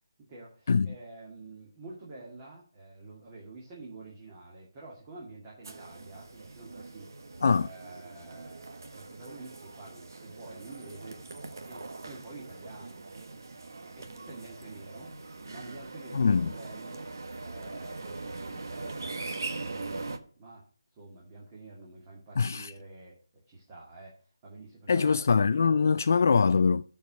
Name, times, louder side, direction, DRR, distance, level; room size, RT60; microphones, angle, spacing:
voice 1, 0.2-7.1 7.6-11.2 11.7-13.4 14.0-15.1 15.5-17.1 17.3-19.0 19.5-20.7 21.0-23.2 23.5-25.4, right 3 dB, 15° right, 2.2 m, -48 dB
sound 1, 5.6-20.2, right 3 dB, 55° right, 1.3 m, -42 dB
voice 2, 16.1-16.5 22.4-22.7 24.9-26.8, left 5 dB, 45° left, 0.3 m, -23 dB
10.0 x 4.8 x 6.6 m
figure-of-eight pair, 170°, 2 cm